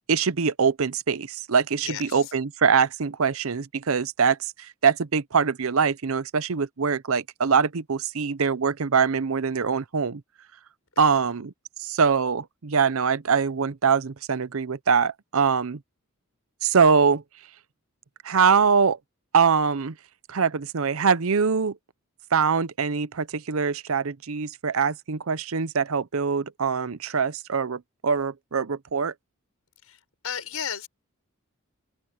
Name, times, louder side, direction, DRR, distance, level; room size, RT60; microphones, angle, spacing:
voice 1, 0.1-10.2 11.0-11.5 11.8-15.8 16.6-17.2 18.2-19.0 19.3-19.9 20.3-21.8 22.3-29.1, right 6 dB, 70° right, 0.7 m, -23 dB
voice 2, 1.8-2.3 11.0-11.3 29.8-30.9, left 8 dB, 75° left, 6.1 m, -35 dB
open air
head